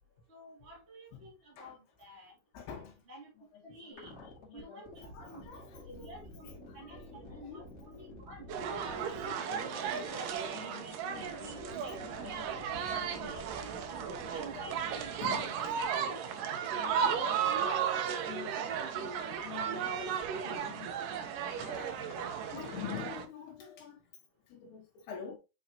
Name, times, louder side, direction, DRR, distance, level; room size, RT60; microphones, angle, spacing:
voice 1, 0.3-2.3 3.1-3.3 3.6-4.1 4.5-8.5 9.0-10.4 10.8-12.8 13.2-14.0 14.3-16.4 19.5-19.7, right 1 dB, 20° right, 2.4 m, -51 dB
voice 2, 2.5-3.1 3.4-6.1 6.7-7.7 8.9-13.8 14.1-14.7 15.2-15.6 15.9-16.2 16.7-17.9 18.2-21.1 21.4-24.0 24.5-25.4, left 7 dB, 80° left, 3.1 m, -48 dB
sound 1, 3.9-10.6 10.9-15.6 15.8-15.9 16.4-16.5 16.7-16.8 17.1-17.2 17.4-17.5 17.7-17.8 18.1-18.2 18.8-20.6 21.2-22.9, left 2 dB, 25° left, 1.8 m, -51 dB
sound 2, 8.5-23.2, right 7 dB, 70° right, 2.3 m, -35 dB
7.5 x 4.7 x 2.9 m
omnidirectional pair, 4.6 m